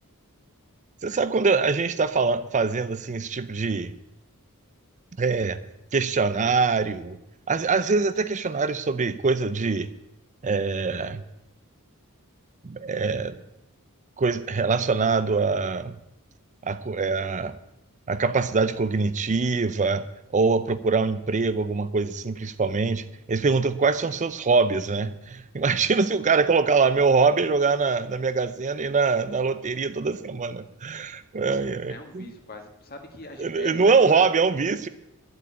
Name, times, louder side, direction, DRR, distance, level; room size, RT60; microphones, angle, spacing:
voice 1, 1.0-3.9 5.2-5.6 5.9-7.2 7.5-9.9 10.4-11.2 12.6-13.4 14.2-16.0 16.6-17.5 18.1-20.0 20.3-32.2 33.4-34.9, right 4 dB, 35° right, 13 dB, 0.5 m, -23 dB
voice 2, 31.9-34.3, left 3 dB, 45° left, 5 dB, 1.9 m, -41 dB
11.5 x 7.9 x 8.7 m, 0.91 s
head